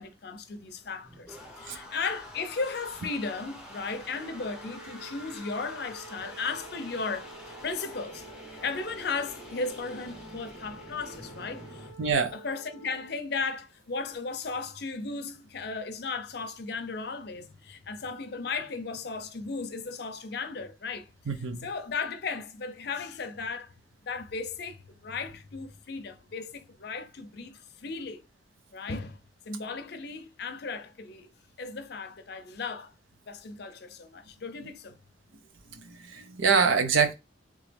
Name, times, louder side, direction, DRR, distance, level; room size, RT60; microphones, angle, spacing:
voice 1, 0.0-11.9 12.3-23.8 24.0-28.2 28.7-29.2 29.4-31.3 31.6-32.9 33.3-35.0, left 4 dB, 55° left, 0.6 m, -36 dB
sound 1, 0.7-11.9, left 1 dB, 5° right, 0.8 m, -47 dB
Wind instrument woodwind instrument, 4.0-13.2, right 3 dB, 55° right, 1.8 m, -50 dB
voice 2, 12.0-12.3 21.3-21.7 35.8-37.1, right 5 dB, 90° right, 0.7 m, -25 dB
3.6 x 3.0 x 3.3 m
head